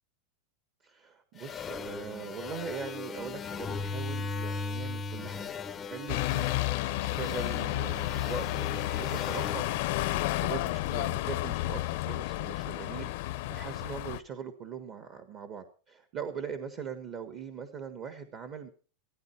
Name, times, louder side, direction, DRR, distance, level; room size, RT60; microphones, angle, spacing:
voice 1, 0.8-9.6 10.1-18.7, right 7 dB, 35° right, 8 dB, 1.4 m, -41 dB
sound 1, 1.4-10.8, left 5 dB, 15° left, 0.7 m, -38 dB
sound 2, 6.1-14.2, left 18 dB, 55° left, 0.7 m, -31 dB
16.0 x 13.5 x 4.5 m, 0.38 s
supercardioid pair, 160°, 0 cm